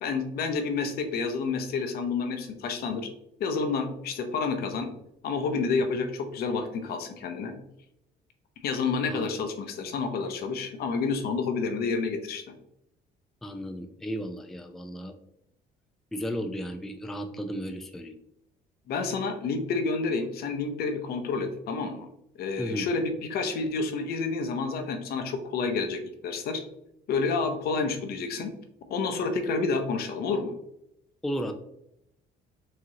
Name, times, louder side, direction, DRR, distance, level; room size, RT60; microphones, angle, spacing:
voice 1, 0.0-3.1 3.4-4.9 5.2-7.5 8.6-12.4 18.9-22.1 22.4-26.6 27.1-28.5 28.9-30.5, left 4 dB, 65° left, 6 dB, 0.7 m, -29 dB
voice 2, 9.1-9.4 13.4-15.1 16.1-18.2 22.6-22.9 31.2-31.5, equal, ahead, 6 dB, 0.3 m, -34 dB
4.8 x 2.9 x 2.8 m, 0.80 s
cardioid pair, 110°, 17 cm